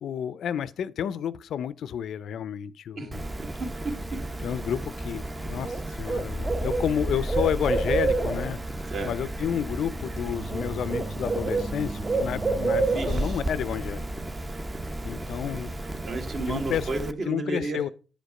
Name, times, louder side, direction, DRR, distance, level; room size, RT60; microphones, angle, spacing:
voice 1, 0.0-3.2 4.4-14.0 15.0-15.7 16.5-16.9 17.3-17.9, left 9 dB, 70° left, 0.5 m, -31 dB
Bird, 3.1-17.1, right 2 dB, 20° right, 0.7 m, -30 dB
voice 2, 3.6-3.9 8.9-9.1 12.8-13.4 16.1-17.8, right 2 dB, 55° right, 2.3 m, -32 dB
8.8 x 5.2 x 4.9 m
cardioid pair, 90°, 0 cm